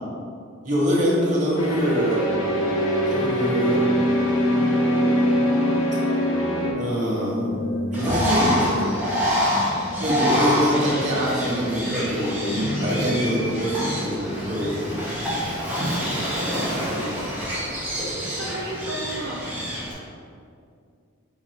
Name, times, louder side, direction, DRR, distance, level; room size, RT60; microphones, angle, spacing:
voice 1, 0.6-2.3 3.1-3.9 6.8-7.5 7.9-9.0 10.0-15.0, equal, 40° right, -7 dB, 1.2 m, -24 dB
sound 1, 1.6-6.7, equal, 90° left, 0.8 m, -22 dB
sound 2, 7.3-14.8, left 1 dB, 55° left, 0.6 m, -33 dB
Bird, 7.9-19.9, equal, 10° right, 1.1 m, -27 dB
voice 2, 16.3-16.9 18.4-19.4, right 1 dB, 60° right, -5 dB, 0.5 m, -34 dB
3.9 x 2.8 x 4.6 m, 2.3 s
head